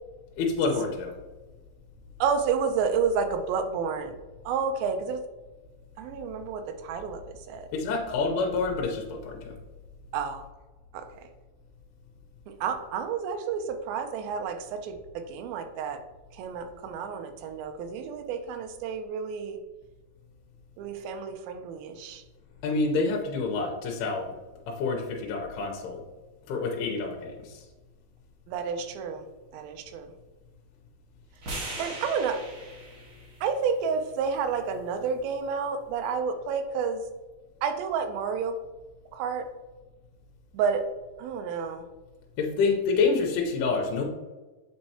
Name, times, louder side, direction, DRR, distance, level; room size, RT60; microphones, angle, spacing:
voice 1, 0.4-1.1 7.7-9.6 22.6-24.3 24.8-26.0 26.5-27.6 42.4-44.1, left 4 dB, 80° left, 1 dB, 2.6 m, -27 dB
voice 2, 2.2-4.2 4.5-5.2 6.0-7.7 10.1-10.5 10.9-11.1 12.6-16.0 16.3-19.6 20.8-22.2 28.5-29.3 29.5-30.1 31.8-32.4 33.4-37.0 37.6-38.6 39.1-39.5 40.5-40.9 41.2-41.9, right 6 dB, 80° right, 6 dB, 2.1 m, -30 dB
sound 1, 31.4-35.6, right 1 dB, 45° right, 1.7 m, -41 dB
7.7 x 4.5 x 2.8 m, 1.2 s
omnidirectional pair, 4.8 m